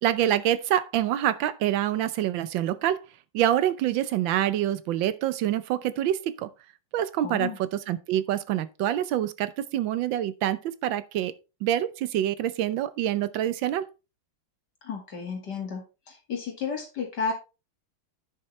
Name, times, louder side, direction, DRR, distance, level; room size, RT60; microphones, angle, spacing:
voice 1, 0.0-3.0 3.3-6.5 6.9-11.3 11.6-13.9, right 12 dB, 80° right, 1.5 m, -26 dB
voice 2, 7.2-7.6 14.8-17.3, left 5 dB, 60° left, 2.5 m, -32 dB
10.0 x 6.7 x 3.2 m
omnidirectional pair, 2.1 m